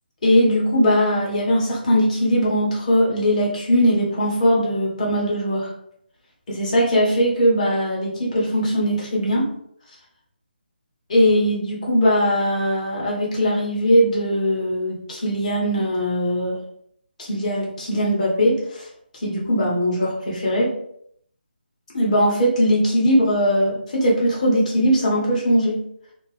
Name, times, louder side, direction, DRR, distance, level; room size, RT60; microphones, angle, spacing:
voice 1, 0.2-5.7 6.5-9.5 11.1-16.6 17.2-18.9 19.2-20.7 21.9-25.8, equal, 40° left, -4 dB, 1.3 m, -20 dB
2.9 x 2.8 x 3.3 m, 0.68 s
figure-of-eight pair, 150°, 6 cm